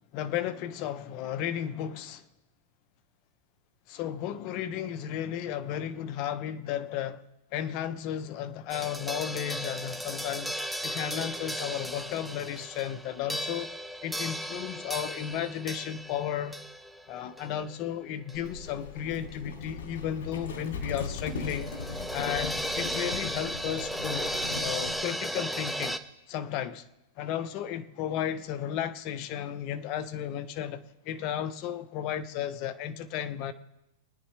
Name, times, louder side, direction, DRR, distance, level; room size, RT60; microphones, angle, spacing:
voice 1, 0.1-2.2 3.9-7.2 7.5-10.6 10.8-13.7 14.0-16.6 17.1-21.7 22.1-26.0 26.3-26.8 27.2-33.5, left 10 dB, 40° left, 0.8 m, -34 dB
sound 1, 8.7-18.6 18.9-19.0 21.0-26.0, equal, ahead, 0.6 m, -35 dB
Livestock farm animals working animals, 18.3-25.0, left 4 dB, 80° left, 2.6 m, -39 dB
23.5 x 9.9 x 3.3 m
supercardioid pair, 145°, 0 cm